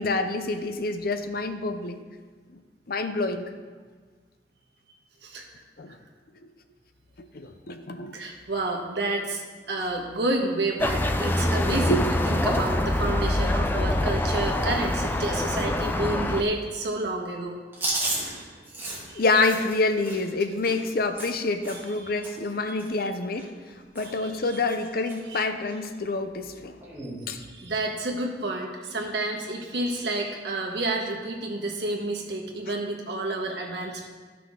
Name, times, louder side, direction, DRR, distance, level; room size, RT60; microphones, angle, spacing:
voice 1, 0.0-2.0 2.9-3.5 5.8-6.0 6.4-6.5 7.3-8.1 11.9-12.0 19.2-23.5 23.9-26.8 27.3-27.4, left 3 dB, 55° left, 8 dB, 0.6 m, -27 dB
voice 2, 8.1-17.6 18.1-18.4 19.1-19.2 21.7-22.1 22.7-23.1 24.0-24.6 25.3-25.5 27.0-27.1 27.5-34.1, right 2 dB, 70° right, 0 dB, 1.4 m, -30 dB
sound 1, 10.8-16.4, left 1 dB, 10° left, 0.4 m, -25 dB
Chewing mastication, 17.7-22.0 22.2-22.5 22.8-23.7 23.9-24.3 24.5-25.2 25.6-25.8 26.8-27.2, right 2 dB, 15° right, 2.1 m, -34 dB
14.0 x 5.9 x 3.7 m, 1.5 s
head